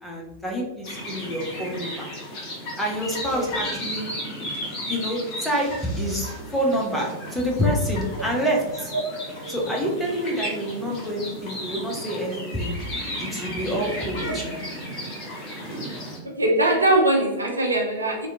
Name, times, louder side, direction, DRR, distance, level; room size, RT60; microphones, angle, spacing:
voice 1, 0.0-2.1 2.8-4.1 4.9-8.9 9.5-14.6, equal, 5° left, -2 dB, 0.6 m, -27 dB
sound 1, 0.8-16.2, equal, 35° left, 0.9 m, -34 dB
voice 2, 8.9-9.4 13.2-13.4 14.3-14.6 16.2-18.3, right 1 dB, 80° right, 1 dB, 0.4 m, -22 dB
2.8 x 2.1 x 2.5 m, 0.99 s
figure-of-eight pair, 90°, 0 cm